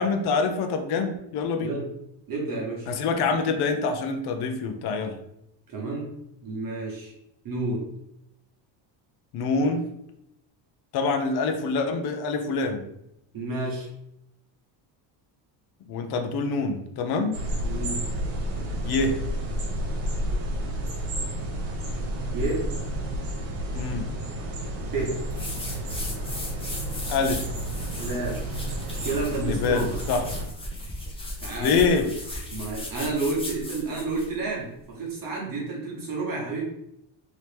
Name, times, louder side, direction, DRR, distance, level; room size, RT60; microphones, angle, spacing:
voice 1, 0.0-1.7 2.9-5.2 9.3-9.8 10.9-12.8 15.9-17.4 18.8-19.2 23.7-24.1 27.1-27.4 29.4-30.2 31.6-32.1, left 4 dB, 50° left, 4 dB, 0.6 m, -25 dB
voice 2, 2.3-2.9 5.7-6.1 6.4-7.1 7.4-7.8 13.3-13.9 17.6-18.0 22.3-22.7 24.8-25.2 28.0-28.4 29.0-29.9 31.4-31.8 32.5-36.7, right 3 dB, 40° right, -3 dB, 1.2 m, -30 dB
sound 1, 17.3-30.4, right 1 dB, 70° right, 1.2 m, -31 dB
sound 2, 25.3-34.3, left 1 dB, 10° left, 0.7 m, -37 dB
2.9 x 2.9 x 3.3 m, 0.80 s
cardioid pair, 120°, 49 cm